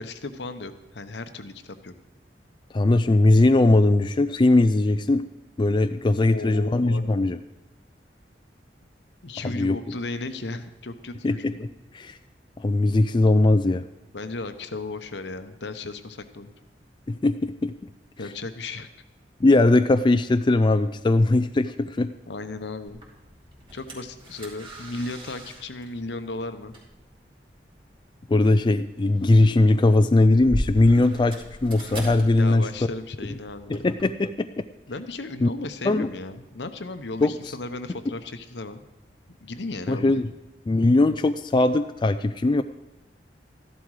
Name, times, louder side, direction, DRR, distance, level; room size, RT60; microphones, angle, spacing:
voice 1, 0.0-1.9 6.2-7.3 9.2-11.7 14.1-16.5 18.2-18.9 22.3-23.0 23.7-26.7 32.4-33.9 34.9-38.8 39.4-40.2, left 2 dB, 75° left, 9 dB, 0.9 m, -35 dB
voice 2, 2.7-5.3 5.6-7.4 9.4-9.8 11.2-11.7 11.9-12.2 12.6-13.9 17.1-17.7 19.4-22.1 28.3-32.7 33.7-34.5 35.4-35.5 35.8-36.1 37.2-37.3 39.9-40.3 40.7-42.6, left 2 dB, 25° left, 9 dB, 0.4 m, -20 dB
door open close suction air tight, 22.9-34.0, equal, 30° right, 2.7 m, -39 dB
14.0 x 11.5 x 4.8 m, 1.0 s
head